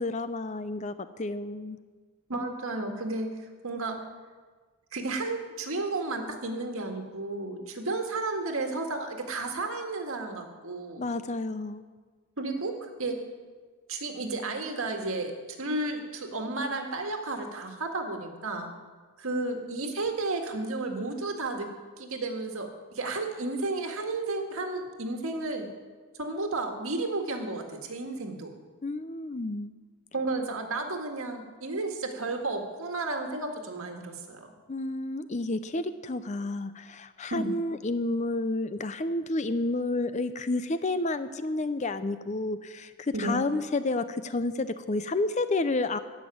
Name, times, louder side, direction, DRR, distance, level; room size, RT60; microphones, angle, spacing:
voice 1, 0.0-1.8 11.0-11.8 28.8-29.7 34.7-46.0, left 2 dB, 30° left, 12 dB, 0.5 m, -30 dB
voice 2, 2.3-3.4 3.6-4.0 4.9-11.1 12.4-13.2 13.9-15.3 15.6-18.7 19.2-21.7 22.0-25.7 26.2-28.5 30.1-34.5 37.3-37.5 43.1-43.4, right 2 dB, 70° right, 3 dB, 1.8 m, -32 dB
15.0 x 6.2 x 9.3 m, 1.4 s
head